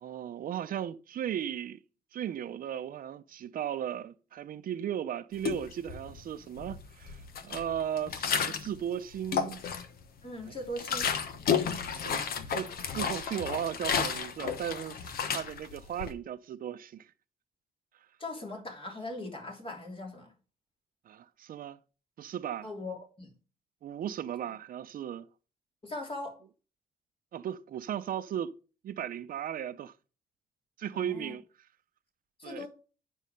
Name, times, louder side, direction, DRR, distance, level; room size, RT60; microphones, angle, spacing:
voice 1, 0.0-1.8 2.1-9.6 10.5-10.6 11.9-15.0 15.3-17.1 21.1-21.8 22.2-22.7 23.8-25.3 27.3-28.5 28.8-29.9 30.8-31.4 32.4-32.7, right 10 dB, 65° right, 0.6 m, -36 dB
sound 1, 5.4-6.2 6.6-8.8 9.1-10.0 10.4-16.1, left 7 dB, 85° left, 1.2 m, -32 dB
voice 2, 10.2-11.2 18.2-20.3 22.6-23.3 25.8-26.4 30.9-31.3 32.4-32.7, left 1 dB, 35° left, 3.3 m, -40 dB
9.3 x 5.5 x 5.2 m
cardioid pair, 110°, 15 cm